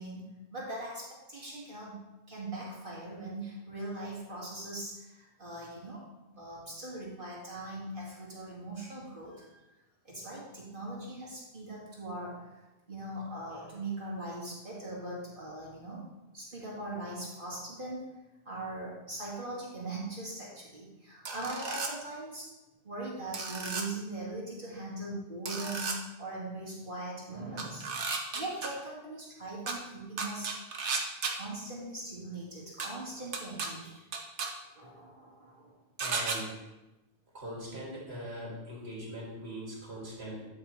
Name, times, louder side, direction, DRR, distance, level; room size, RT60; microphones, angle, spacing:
voice 1, 0.0-1.9 2.3-6.0 6.4-9.6 10.0-16.0 16.3-18.0 18.5-22.5 22.8-27.9 28.3-30.5 31.3-34.0 34.7-35.8, right 2 dB, 50° right, -5 dB, 2.0 m, -40 dB
sound 1, 21.3-21.9 23.3-23.8 25.5-26.0 27.6-28.7 29.7-29.8 30.2-31.3 32.8-32.9 33.3-33.7 34.1-34.5 36.0-36.4, right 4 dB, 90° right, 1.3 m, -33 dB
voice 2, 36.0-36.5 37.3-40.5, right 1 dB, 70° right, -4 dB, 2.5 m, -41 dB
12.0 x 5.3 x 3.1 m, 1.0 s
omnidirectional pair, 1.1 m